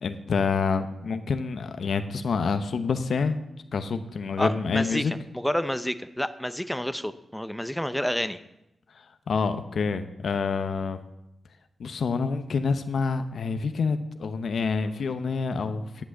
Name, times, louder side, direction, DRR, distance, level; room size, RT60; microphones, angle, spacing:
voice 1, 0.0-3.4 3.7-5.1 9.3-11.0 11.8-16.0, left 5 dB, 75° left, 10 dB, 0.8 m, -27 dB
voice 2, 4.4-8.4, equal, 5° left, 11 dB, 0.7 m, -29 dB
10.5 x 6.1 x 8.1 m, 0.86 s
cardioid pair, 55°, 0 cm